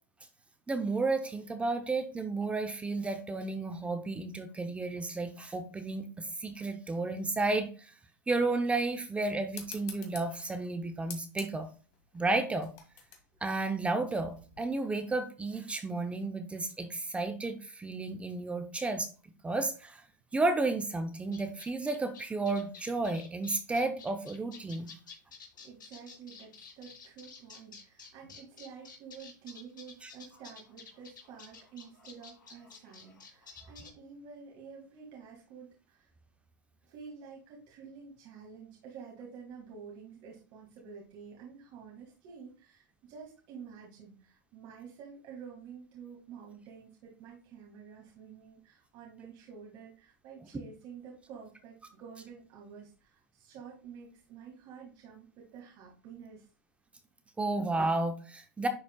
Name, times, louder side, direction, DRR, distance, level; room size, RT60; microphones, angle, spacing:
voice 1, 0.7-7.9 8.3-11.7 12.1-12.7 13.4-19.1 19.4-20.0 20.3-24.9 30.0-30.1 57.4-58.7, right 3 dB, 10° right, 7 dB, 0.7 m, -32 dB
sound 1, 9.5-14.6, left 7 dB, 50° left, 1.9 m, -49 dB
sound 2, 21.3-33.9, left 5 dB, 85° left, 2.6 m, -51 dB
voice 2, 25.6-36.1 36.8-56.5, right 6 dB, 45° right, -2 dB, 2.0 m, -49 dB
10.5 x 4.2 x 2.3 m, 0.37 s
hypercardioid pair, 115°, 10 cm